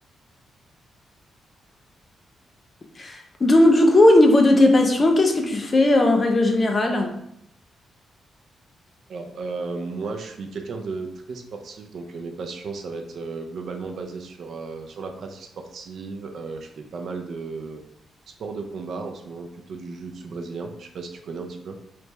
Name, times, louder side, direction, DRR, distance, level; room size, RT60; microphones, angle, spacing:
voice 1, 3.0-7.2, left 1 dB, 25° left, 3 dB, 0.5 m, -17 dB
voice 2, 9.1-17.8 18.4-21.8, right 4 dB, 60° right, 4 dB, 0.5 m, -34 dB
3.3 x 3.2 x 3.0 m, 0.75 s
cardioid pair, 140°, 0 cm